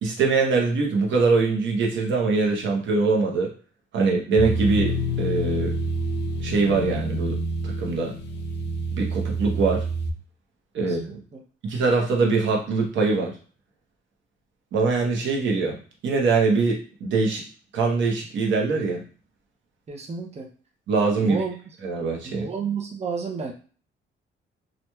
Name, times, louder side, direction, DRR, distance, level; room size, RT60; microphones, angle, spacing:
voice 1, 0.0-3.5 3.9-5.7 6.4-7.4 7.6-8.1 8.9-9.9 10.7-11.2 11.6-13.3 14.7-15.8 16.0-17.4 17.7-19.0 20.9-21.4 21.8-22.5, right 4 dB, 70° right, -1 dB, 0.9 m, -23 dB
sound 1, 4.4-10.1, right 1 dB, 60° left, 0.5 m, -28 dB
voice 2, 10.8-11.4 19.9-20.5 21.2-21.5 22.2-23.5, right 5 dB, 35° right, 2 dB, 0.7 m, -31 dB
3.0 x 2.5 x 2.3 m, 0.40 s
cardioid pair, 90°, 20 cm